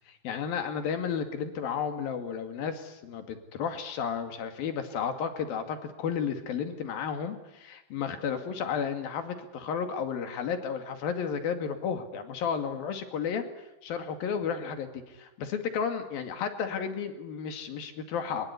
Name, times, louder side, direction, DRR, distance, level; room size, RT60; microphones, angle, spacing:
voice 1, 0.1-13.4 13.8-18.5, left 7 dB, 55° left, 7 dB, 3.7 m, -33 dB
23.5 x 22.0 x 9.8 m, 0.92 s
omnidirectional pair, 5.6 m